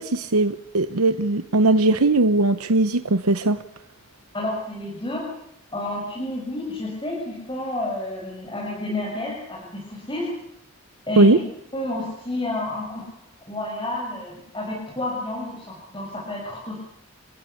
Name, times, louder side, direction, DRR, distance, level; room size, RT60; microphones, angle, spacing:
voice 1, 0.0-3.6 11.2-11.4, right 2 dB, 85° right, 10 dB, 1.0 m, -19 dB
voice 2, 4.3-5.2 5.7-10.3 11.1-11.4 11.7-16.7, left 1 dB, 20° left, -5 dB, 6.9 m, -30 dB
30.0 x 16.0 x 8.6 m, 0.81 s
head